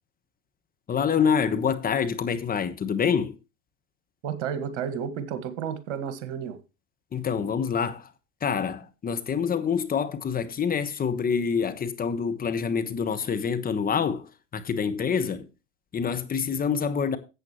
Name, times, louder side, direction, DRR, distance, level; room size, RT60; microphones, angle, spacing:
voice 1, 0.9-3.3 7.1-8.1 8.4-14.3 14.5-15.5 15.9-17.2, left 6 dB, 20° left, 1.2 m, -26 dB
voice 2, 4.2-6.6, right 8 dB, 60° right, 1.9 m, -32 dB
13.5 x 8.3 x 3.1 m
hypercardioid pair, 95°, 39 cm